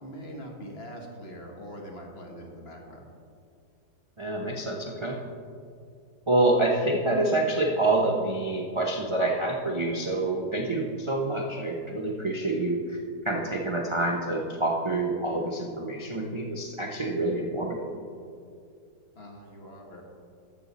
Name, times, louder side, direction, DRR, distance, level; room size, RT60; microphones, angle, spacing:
voice 1, 0.0-3.1 19.1-20.0, equal, 40° left, 0 dB, 1.6 m, -42 dB
voice 2, 4.2-5.2 6.3-13.0 13.2-17.9, right 2 dB, 45° right, 0 dB, 0.4 m, -27 dB
12.5 x 7.6 x 4.1 m, 2.3 s
omnidirectional pair, 1.8 m